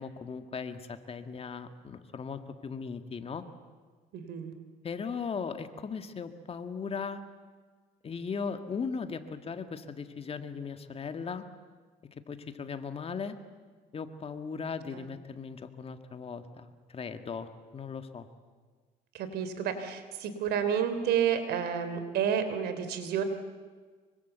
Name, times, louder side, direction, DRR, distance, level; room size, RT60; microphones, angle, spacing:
voice 1, 0.0-3.5 4.8-7.2 8.0-11.5 12.3-13.4 13.9-18.3, left 5 dB, 35° left, 8 dB, 1.9 m, -38 dB
voice 2, 4.1-4.5 14.9-15.0 19.1-23.2, right 8 dB, 75° right, 9 dB, 3.4 m, -30 dB
25.5 x 24.0 x 8.2 m, 1.5 s
cardioid pair, 110°, 17 cm